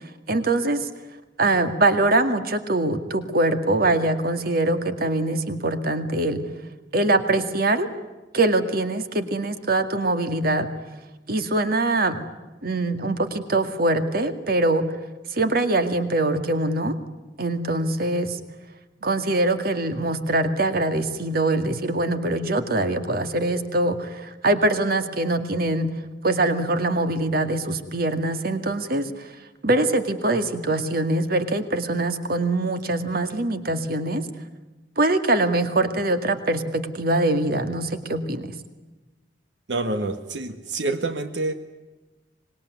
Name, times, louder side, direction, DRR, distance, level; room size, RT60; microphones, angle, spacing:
voice 1, 0.3-0.9 1.4-6.4 6.9-7.9 8.3-10.7 11.3-12.2 12.6-14.9 15.3-16.9 17.4-18.4 19.0-25.9 26.2-29.3 29.6-34.2 35.0-38.5, right 2 dB, 60° right, 9 dB, 2.1 m, -23 dB
voice 2, 39.7-41.5, right 2 dB, 90° right, 8 dB, 1.6 m, -27 dB
25.5 x 21.0 x 9.5 m, 1.1 s
head